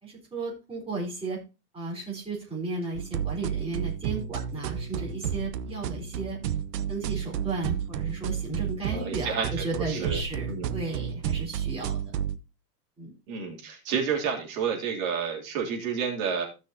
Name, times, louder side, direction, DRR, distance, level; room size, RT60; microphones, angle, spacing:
voice 1, 0.0-1.4 1.7-6.4 6.9-12.0 13.0-13.1, right 3 dB, 10° right, -4 dB, 4.0 m, -34 dB
sound 1, 3.0-12.4, right 8 dB, 85° right, 1.0 m, -32 dB
voice 2, 8.9-9.5 9.9-10.2 10.5-10.7 13.3-16.5, right 6 dB, 55° right, -1 dB, 3.4 m, -30 dB
16.0 x 6.1 x 2.8 m, 0.29 s
supercardioid pair, 160°, 48 cm